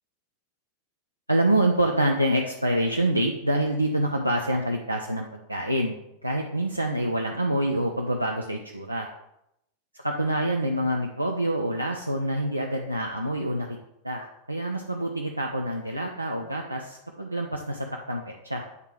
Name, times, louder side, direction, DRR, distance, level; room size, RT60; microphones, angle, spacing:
voice 1, 1.3-6.0 6.2-9.1 10.0-13.7 14.0-18.6, right 1 dB, 85° right, 1 dB, 0.5 m, -26 dB
8.1 x 3.6 x 4.6 m, 0.81 s
figure-of-eight pair, 90°, 0 cm